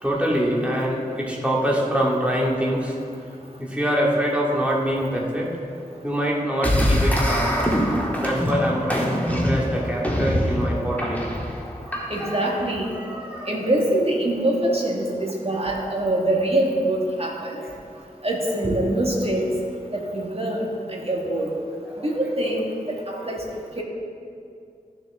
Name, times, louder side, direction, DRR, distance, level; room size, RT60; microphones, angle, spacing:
voice 1, 0.0-3.0 3.6-5.5 6.0-7.5 8.2-11.3 11.9-12.6 12.9-13.6 16.0-16.1 17.4-17.7 18.6-18.8 21.9-22.1, equal, 10° right, -4 dB, 2.3 m, -25 dB
sound 1, 6.6-12.4, equal, 10° left, 1.7 m, -24 dB
voice 2, 12.1-12.9 13.5-17.6 18.2-19.5 19.9-21.5 22.0-22.6 23.1-23.4 23.8-23.9, right 1 dB, 40° right, -2 dB, 1.9 m, -24 dB
14.5 x 6.6 x 3.8 m, 2.4 s
wide cardioid pair, 45°, 15 cm